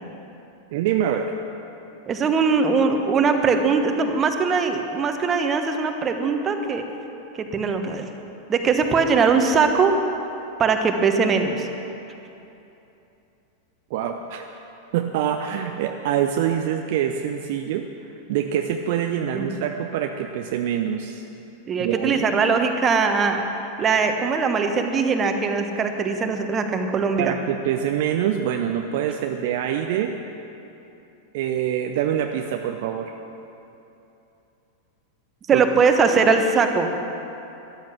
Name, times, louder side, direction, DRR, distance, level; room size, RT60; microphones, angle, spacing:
voice 1, 0.7-1.3 13.9-14.5 14.9-17.8 18.3-21.2 21.8-22.3 27.2-30.1 31.3-33.1 35.5-35.6, right 9 dB, 50° right, 5 dB, 0.6 m, -25 dB
voice 2, 2.1-6.8 7.4-8.1 8.5-9.9 10.6-11.7 19.3-19.5 21.7-23.4 23.8-27.4 35.5-36.9, right 5 dB, 25° right, 5 dB, 1.2 m, -21 dB
13.5 x 12.0 x 6.1 m, 2.9 s
figure-of-eight pair, 90°, 0 cm